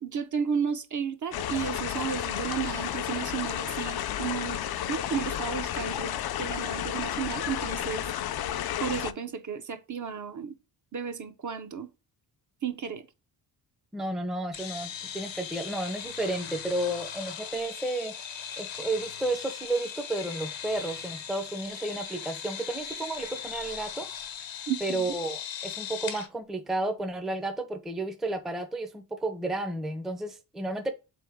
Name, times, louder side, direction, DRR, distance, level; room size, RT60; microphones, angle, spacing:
voice 1, 0.0-4.6 4.9-8.0 8.8-10.5 10.9-11.9 12.6-13.1 24.7-25.1, right 7 dB, 45° right, 0.6 m, -33 dB
sound 1, 1.3-9.1, left 11 dB, 60° left, 0.5 m, -32 dB
voice 2, 13.9-18.1 18.6-24.1 24.8-30.9, right 2 dB, ahead, 0.5 m, -32 dB
sound 2, 14.5-26.3, left 8 dB, 85° left, 0.9 m, -39 dB
3.7 x 3.4 x 3.5 m
cardioid pair, 90°, 44 cm